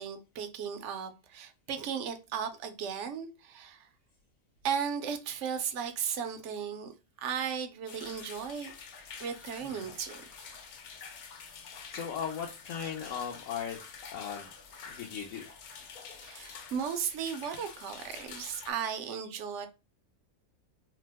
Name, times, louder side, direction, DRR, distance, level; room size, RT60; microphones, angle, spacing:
voice 1, 0.0-3.9 4.6-6.9 7.2-8.7 9.2-10.2 16.2-19.7, right 7 dB, 65° right, 0.8 m, -36 dB
sound 1, 7.9-18.7, left 6 dB, 90° left, 1.1 m, -47 dB
voice 2, 9.6-9.9 11.5-13.8 14.1-14.5 14.8-15.5, left 7 dB, 70° left, 0.9 m, -38 dB
2.8 x 2.0 x 3.3 m
omnidirectional pair, 1.5 m